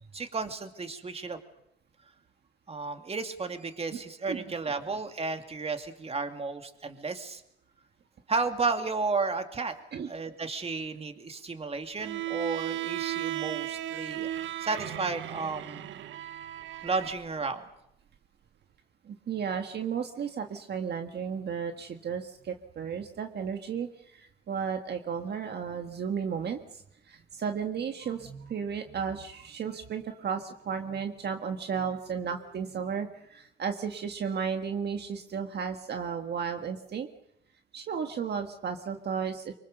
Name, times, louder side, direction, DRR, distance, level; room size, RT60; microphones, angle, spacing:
voice 1, 0.1-1.4 2.7-7.4 8.3-9.7 10.1-14.3 14.6-15.9 16.8-17.6, right 4 dB, 30° right, 6 dB, 2.5 m, -33 dB
Bowed string instrument, 12.0-17.2, right 13 dB, 75° right, 1.0 m, -35 dB
voice 2, 19.0-37.1 37.7-39.5, right 6 dB, 55° right, 5 dB, 1.7 m, -34 dB
25.0 x 24.5 x 6.8 m, 0.78 s
cardioid pair, 90°, 20 cm